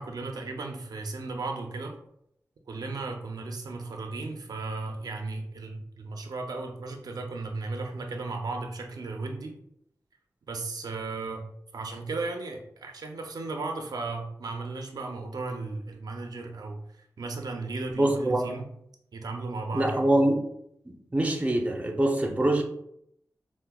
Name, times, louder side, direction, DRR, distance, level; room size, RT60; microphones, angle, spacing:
voice 1, 0.0-1.9 2.7-9.5 10.5-11.4 11.7-18.6 19.1-20.0, right 3 dB, 85° right, 3 dB, 0.4 m, -35 dB
voice 2, 18.0-18.5 19.7-20.4 20.9-22.6, right 1 dB, 20° right, 2 dB, 0.5 m, -24 dB
4.4 x 2.0 x 2.2 m, 0.74 s
wide cardioid pair, 90°, 6 cm